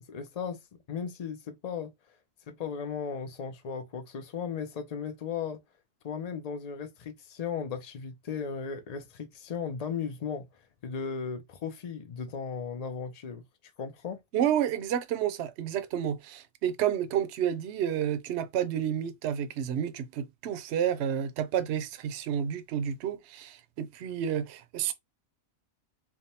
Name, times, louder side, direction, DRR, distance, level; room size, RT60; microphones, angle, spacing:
voice 1, 0.1-0.6 0.9-1.9 2.5-5.6 6.0-13.4 13.8-14.2, left 6 dB, 75° left, 0.3 m, -36 dB
voice 2, 14.3-24.9, right 9 dB, 60° right, 0.8 m, -30 dB
3.5 x 2.1 x 4.1 m
omnidirectional pair, 1.4 m